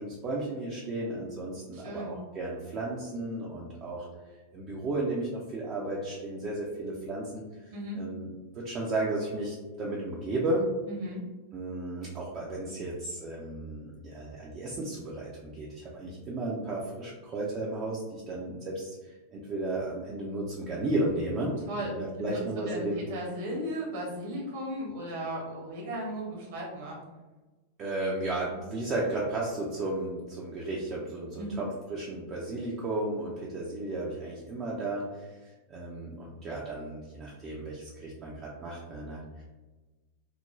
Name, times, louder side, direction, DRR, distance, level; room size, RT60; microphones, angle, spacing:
voice 1, 0.0-4.1 4.5-7.4 7.9-10.7 11.5-23.0 27.8-39.4, right 2 dB, 30° right, -4 dB, 0.5 m, -34 dB
voice 2, 1.7-2.1 7.7-8.0 10.9-11.2 21.7-22.4 22.7-27.0 31.4-31.6, equal, 55° right, -3 dB, 1.0 m, -36 dB
2.4 x 2.1 x 3.0 m, 1.2 s
figure-of-eight pair, 90°, 0 cm